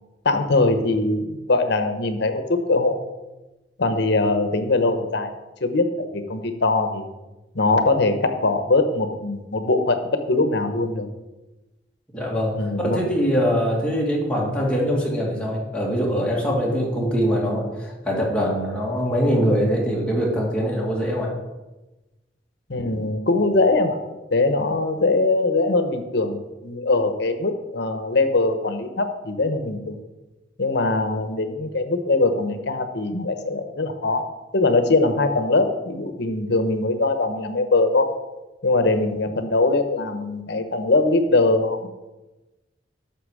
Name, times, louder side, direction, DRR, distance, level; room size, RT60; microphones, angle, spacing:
voice 1, 0.2-2.9 3.8-5.3 5.6-7.1 7.5-11.1 12.5-13.0 22.7-24.0 24.3-30.0 30.6-34.2 34.5-38.1 38.6-41.9, left 2 dB, 65° left, 8 dB, 1.0 m, -21 dB
voice 2, 12.1-12.6 12.8-21.3, equal, 5° left, -4 dB, 2.4 m, -23 dB
12.0 x 6.7 x 4.9 m, 1.1 s
head